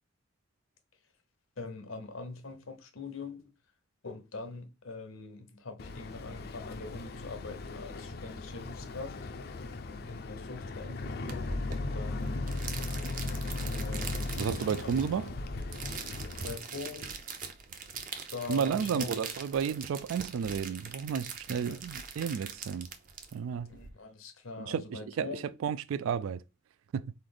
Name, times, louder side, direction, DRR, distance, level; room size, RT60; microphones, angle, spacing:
voice 1, 1.6-3.4 4.0-9.2 10.0-12.5 13.6-14.3 14.8-15.0 16.4-17.1 18.3-19.4 21.5-21.8 23.7-25.5, left 3 dB, 85° left, 0.9 m, -43 dB
Boat Water vehicle, 5.8-16.6, left 2 dB, 50° left, 0.4 m, -37 dB
sound 1, 11.3-23.9, right 5 dB, 40° right, 0.6 m, -42 dB
voice 2, 14.4-15.3 18.5-22.9 23.3-23.7 24.7-26.4 26.9-27.1, right 7 dB, 85° right, 0.3 m, -32 dB
4.2 x 3.3 x 3.9 m
head